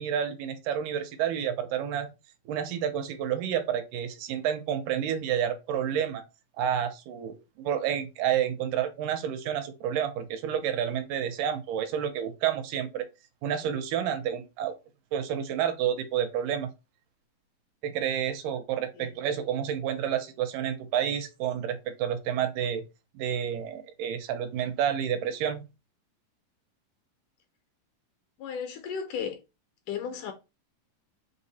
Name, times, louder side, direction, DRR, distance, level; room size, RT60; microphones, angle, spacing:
voice 1, 0.0-2.1 2.5-6.2 6.6-13.1 13.4-14.7 15.1-16.7 17.8-22.9 23.2-25.6, right 9 dB, 85° right, 2.2 m, -29 dB
voice 2, 28.4-29.4 29.9-30.3, left 7 dB, 80° left, 2.0 m, -34 dB
5.4 x 2.1 x 4.0 m
omnidirectional pair, 3.8 m